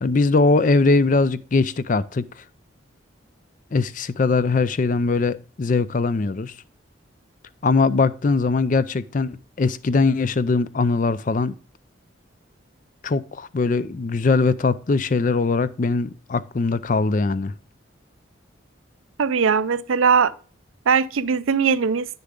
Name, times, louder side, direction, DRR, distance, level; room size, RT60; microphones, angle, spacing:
voice 1, 0.0-2.4 3.7-6.5 7.6-11.6 13.0-17.5, left 3 dB, 40° left, 0.4 m, -21 dB
voice 2, 19.2-20.3 20.9-22.1, right 6 dB, 85° right, 0.5 m, -20 dB
9.7 x 6.7 x 3.7 m
head